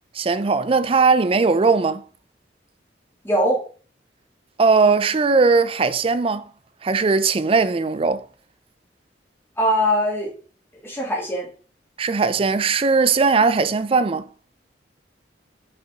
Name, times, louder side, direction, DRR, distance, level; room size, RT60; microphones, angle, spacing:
voice 1, 0.2-2.0 4.6-6.4 6.8-8.2 12.0-14.3, right 4 dB, 30° right, 0.4 m, -19 dB
voice 2, 3.2-3.6 9.6-10.3 10.8-11.5, equal, 15° left, 2.3 m, -21 dB
6.0 x 5.0 x 3.7 m
head